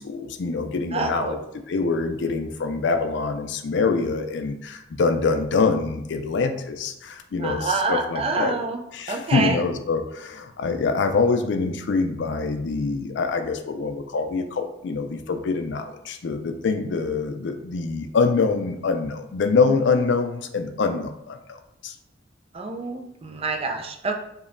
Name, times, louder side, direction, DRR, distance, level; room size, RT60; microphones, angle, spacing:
voice 1, 0.0-1.4 1.7-8.6 8.9-21.6 21.8-21.9, left 4 dB, 65° left, 7 dB, 0.4 m, -25 dB
voice 2, 0.9-1.4 7.4-8.8 9.1-9.6 22.5-24.1, right 3 dB, 30° right, 4 dB, 0.4 m, -27 dB
5.0 x 2.8 x 2.5 m, 0.81 s
head